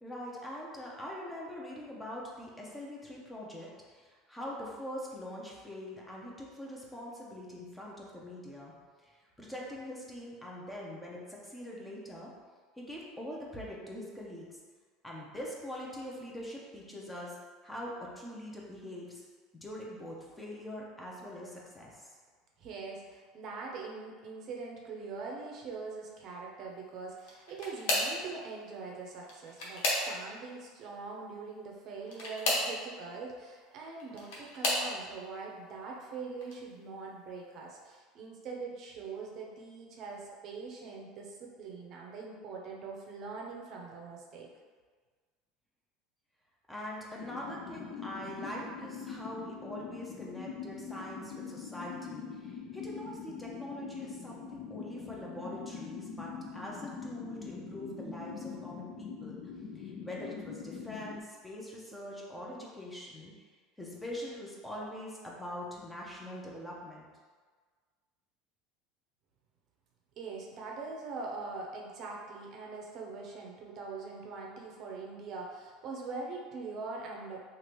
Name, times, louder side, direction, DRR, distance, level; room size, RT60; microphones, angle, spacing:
voice 1, 0.0-8.7 9.0-12.3 12.8-14.6 15.0-17.4 17.6-19.2 19.5-22.1 46.7-59.4 59.7-63.3 63.8-67.1, equal, 10° left, -4 dB, 0.6 m, -43 dB
voice 2, 22.6-44.5 70.2-77.4, right 4 dB, 50° right, -1 dB, 0.6 m, -42 dB
sound 1, 27.2-28.2 29.2-30.4 32.0-32.7 33.8-34.9 35.6-36.0 36.4-36.5 37.9-38.0, left 1 dB, 75° left, 0.8 m, -32 dB
sound 2, 47.2-61.2, left 6 dB, 50° left, 0.3 m, -43 dB
3.1 x 2.5 x 3.0 m, 1.5 s
supercardioid pair, 120°, 0 cm